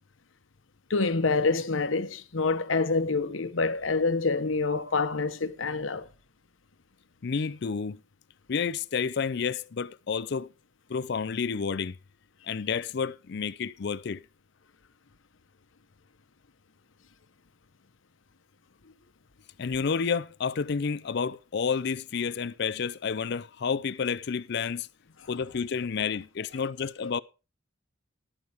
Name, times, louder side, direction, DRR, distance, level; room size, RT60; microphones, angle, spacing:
voice 1, 0.9-6.1 27.0-27.1, left 3 dB, 90° left, 1.0 m, -27 dB
voice 2, 7.2-8.0 8.5-10.5 10.9-12.0 12.5-14.2 19.6-24.9 25.3-27.2, left 6 dB, 60° left, 0.5 m, -30 dB
14.0 x 11.0 x 3.5 m
head